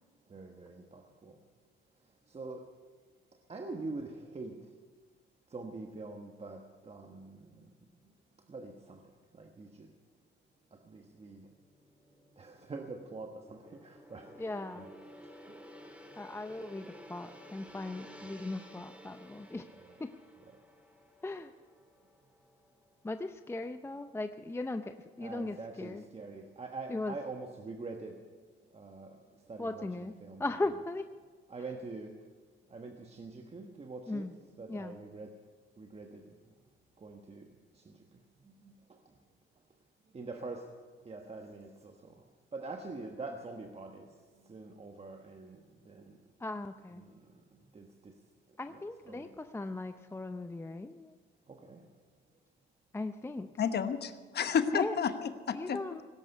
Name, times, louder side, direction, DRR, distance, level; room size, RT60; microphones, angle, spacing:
voice 1, 0.3-1.4 2.3-2.6 3.5-4.7 5.5-7.7 8.5-9.0 9.3-9.9 10.7-11.5 12.4-14.9 16.6-17.0 18.2-18.4 19.7-20.0 20.4-20.6 25.2-28.2 28.7-30.7 31.5-32.2 32.7-34.3 34.6-35.4 35.8-36.4 37.0-38.0 38.4-39.0 40.1-40.7 41.0-42.3 42.5-46.2 46.9-48.1 48.5-49.3 51.5-51.9, right 3 dB, 30° right, 3 dB, 1.3 m, -45 dB
Gong, 11.0-23.5 23.8-24.1, equal, 5° right, 2.8 m, -54 dB
voice 2, 14.4-14.9 16.2-19.7 20.0-20.1 21.2-21.5 23.0-26.0 26.9-27.1 29.6-30.1 30.4-31.1 34.1-34.3 34.7-35.0 46.4-47.0 48.6-51.1 52.9-53.5 54.7-55.0 55.5-56.0, left 2 dB, 10° left, 9 dB, 0.6 m, -38 dB
voice 3, 53.6-55.8, left 7 dB, 55° left, 10 dB, 1.0 m, -31 dB
18.0 x 11.0 x 6.8 m, 1.4 s
cardioid pair, 90°, 20 cm